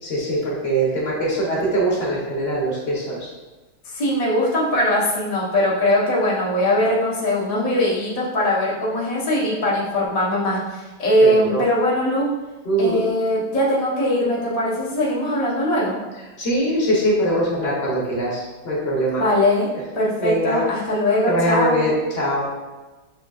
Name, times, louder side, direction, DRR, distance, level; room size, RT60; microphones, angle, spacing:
voice 1, 0.0-3.3 11.2-11.6 12.6-13.0 16.1-19.2 19.7-19.9 20.2-20.9 21.3-22.5, right 1 dB, 50° left, -5 dB, 0.7 m, -22 dB
voice 2, 3.8-12.3 12.8-16.0 19.2-19.7 19.9-21.9, left 1 dB, 85° left, -7 dB, 0.3 m, -21 dB
6.5 x 2.6 x 2.3 m, 1.2 s
omnidirectional pair, 2.2 m